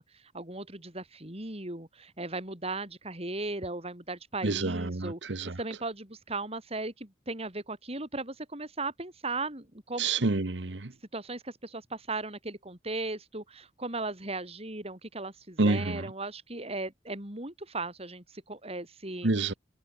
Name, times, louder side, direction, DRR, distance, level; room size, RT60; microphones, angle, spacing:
voice 1, 0.0-10.1 11.1-19.3, right 2 dB, 35° right, 6.3 m, -37 dB
voice 2, 4.4-5.6 10.0-10.9 15.6-16.1 19.2-19.5, right 3 dB, 85° right, 1.2 m, -28 dB
head